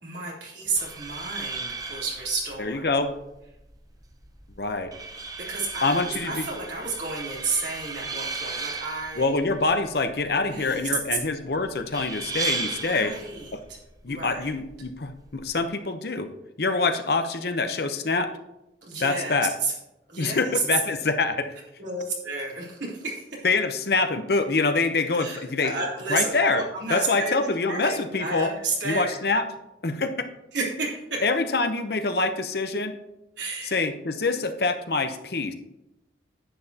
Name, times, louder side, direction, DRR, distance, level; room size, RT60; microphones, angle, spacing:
voice 1, 0.0-2.9 5.5-9.3 10.4-10.9 12.8-13.8 14.1-14.5 18.8-19.7 20.1-20.8 21.8-23.5 25.2-27.3 27.7-29.1 30.5-31.2 33.4-33.8, right 3 dB, 75° right, -4 dB, 3.4 m, -31 dB
sound 1, 0.7-15.7, right 4 dB, 20° right, 0.6 m, -36 dB
voice 2, 2.6-3.1 4.6-4.9 5.8-6.5 9.2-13.1 14.0-16.3 16.6-18.3 19.0-19.5 20.2-21.5 23.4-25.7 26.1-26.6 26.9-28.5 28.8-29.4 29.8-30.1 31.2-32.9 33.7-35.5, left 3 dB, 55° left, 8 dB, 0.8 m, -25 dB
10.0 x 9.2 x 2.8 m, 0.92 s
head